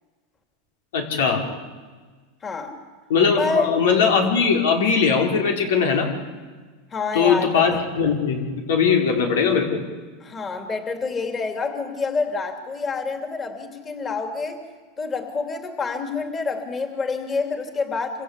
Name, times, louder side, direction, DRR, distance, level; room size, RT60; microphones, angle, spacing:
voice 1, 0.9-1.5 3.1-6.1 7.1-9.8, left 6 dB, 90° left, 3 dB, 5.1 m, -20 dB
voice 2, 2.4-2.7 3.4-3.7 6.9-7.8 10.2-14.6 15.0-18.2, left 4 dB, 20° left, 5 dB, 3.0 m, -27 dB
27.0 x 26.5 x 8.4 m, 1.4 s
supercardioid pair, 145°, 0 cm